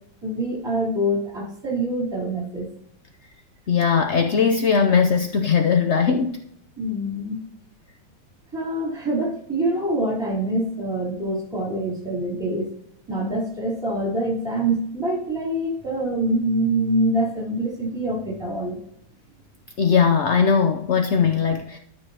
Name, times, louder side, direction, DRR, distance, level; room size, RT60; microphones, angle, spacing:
voice 1, 0.2-2.7 6.8-7.4 8.5-12.7 13.1-18.8, right 1 dB, 10° right, -4 dB, 3.3 m, -25 dB
voice 2, 3.7-6.4 19.8-21.8, left 6 dB, 70° left, 4 dB, 0.6 m, -19 dB
13.0 x 6.1 x 2.8 m, 0.72 s
omnidirectional pair, 2.0 m